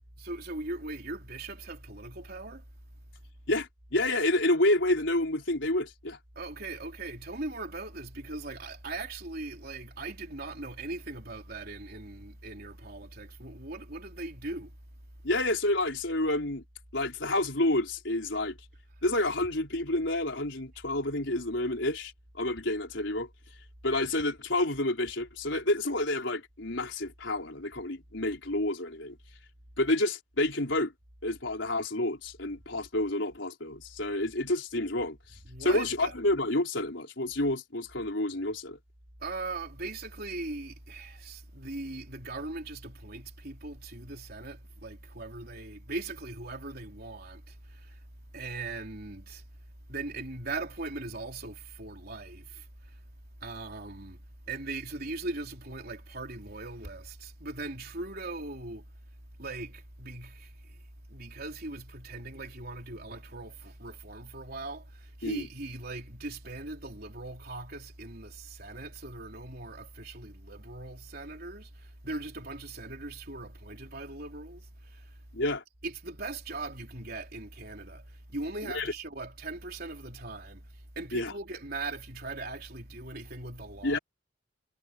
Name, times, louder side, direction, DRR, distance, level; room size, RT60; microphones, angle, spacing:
voice 1, 0.2-2.6 6.4-14.8 19.4-19.5 35.4-36.2 39.2-48.0 48.3-49.4 49.9-53.0 53.4-58.9 59.4-75.2 75.8-84.0, right 2 dB, 55° right, 3.8 m, -40 dB
voice 2, 3.5-6.2 15.2-16.6 16.9-18.6 19.0-22.1 22.4-23.3 23.8-29.2 29.8-30.9 31.2-35.2 35.6-38.8 65.2-65.5 75.3-75.6 78.6-78.9 81.1-81.3 83.8-84.0, left 1 dB, 70° left, 4.9 m, -29 dB
head